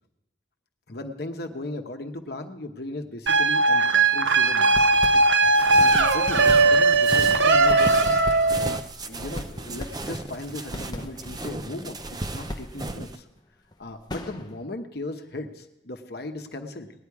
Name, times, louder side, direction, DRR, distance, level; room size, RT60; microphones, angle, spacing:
voice 1, 0.9-4.8 5.1-5.2 5.8-7.9 8.6-13.3 13.8-16.9, left 2 dB, 55° left, 5 dB, 1.0 m, -37 dB
sound 1, 3.3-8.8, right 3 dB, 75° right, 0.7 m, -19 dB
sound 2, 4.7-5.7 6.0-14.6, left 1 dB, 20° left, 0.7 m, -39 dB
sound 3, 5.4-13.2, right 2 dB, 20° right, 0.5 m, -35 dB
18.5 x 10.0 x 4.8 m, 0.89 s
head